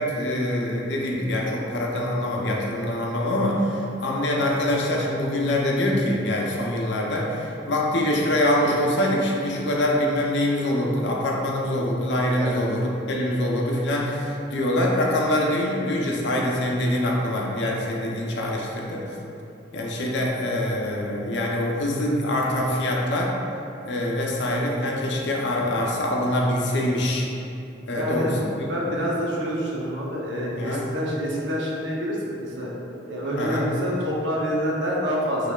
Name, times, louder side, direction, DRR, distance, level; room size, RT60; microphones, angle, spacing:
voice 1, 0.0-19.0 19.7-23.3 23.8-27.3 27.9-28.7 30.6-30.8 33.4-33.7, left 1 dB, 70° left, -2 dB, 0.5 m, -24 dB
voice 2, 28.0-28.4 28.7-32.7 33.0-35.5, equal, 75° right, -4 dB, 0.7 m, -27 dB
4.0 x 3.0 x 2.3 m, 2.7 s
head